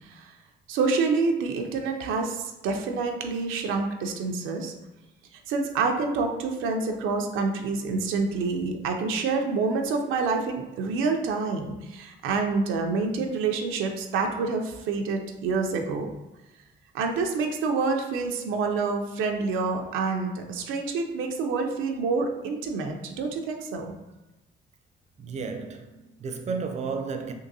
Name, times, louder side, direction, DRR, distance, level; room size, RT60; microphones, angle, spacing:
voice 1, 0.7-4.7 5.5-16.1 16.9-23.9, right 4 dB, 90° right, 0.5 m, -27 dB
voice 2, 25.2-27.3, right 5 dB, 35° right, 0.4 m, -33 dB
3.7 x 2.6 x 2.6 m
cardioid pair, 90°, 20 cm